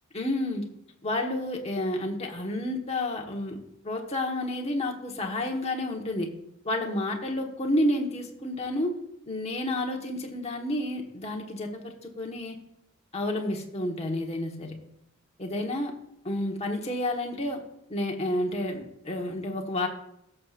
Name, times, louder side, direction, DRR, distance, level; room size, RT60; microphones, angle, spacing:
voice 1, 0.1-0.6 1.0-3.6 3.8-6.3 6.6-9.0 9.3-12.6 13.1-14.7 15.4-15.9 16.2-17.6 17.9-19.9, left 1 dB, 30° left, 1 dB, 1.3 m, -30 dB
17.5 x 6.8 x 2.5 m, 0.81 s
head